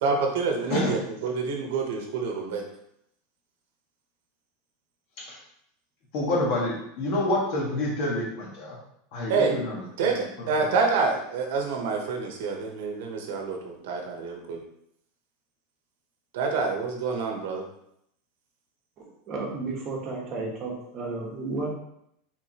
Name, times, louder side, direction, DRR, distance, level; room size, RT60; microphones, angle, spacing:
voice 1, 0.0-2.6 9.3-9.6 10.0-14.6 16.3-17.6, right 4 dB, 70° right, 2 dB, 0.9 m, -27 dB
voice 2, 6.1-8.8 9.1-10.7, left 1 dB, 45° left, -3 dB, 1.4 m, -28 dB
voice 3, 19.0-21.7, right 3 dB, 35° right, -1 dB, 1.1 m, -33 dB
4.7 x 3.8 x 2.9 m, 0.76 s
supercardioid pair, 165°, 0 cm